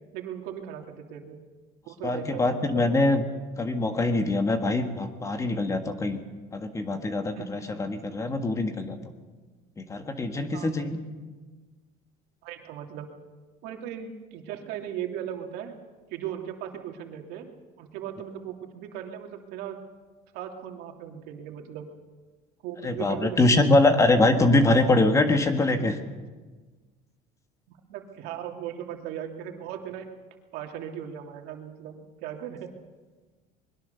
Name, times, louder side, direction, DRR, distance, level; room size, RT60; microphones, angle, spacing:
voice 1, 0.1-1.4 1.9-2.9 7.3-7.5 10.5-10.9 12.4-13.1 13.6-15.7 16.1-17.5 17.8-19.8 20.3-21.9 22.6-24.0 25.0-25.1 27.7-30.1 30.5-32.7, right 9 dB, 75° right, 3 dB, 2.7 m, -38 dB
voice 2, 2.0-3.2 3.6-6.2 6.5-9.0 9.8-11.0 22.8-26.0, left 2 dB, 20° left, 7 dB, 1.6 m, -23 dB
22.0 x 21.5 x 6.9 m, 1.3 s
cardioid pair, 150°, 16 cm